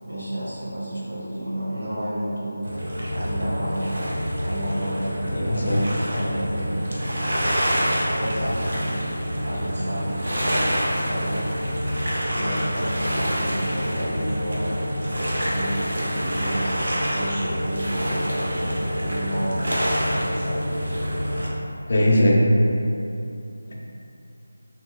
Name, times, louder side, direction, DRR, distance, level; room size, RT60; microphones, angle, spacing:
voice 1, 0.0-2.6 3.1-4.0 4.4-6.8 8.0-9.0 9.4-11.5 12.3-14.9 15.3-16.7 17.1-20.6, right 1 dB, 90° right, -10 dB, 1.4 m, -31 dB
sound 1, 2.6-21.5, equal, 60° right, 0.6 m, -26 dB
voice 2, 5.3-5.8 21.9-22.5, left 1 dB, 50° left, -3 dB, 0.5 m, -19 dB
3.2 x 2.9 x 2.3 m, 2.7 s
figure-of-eight pair, 170°, 0 cm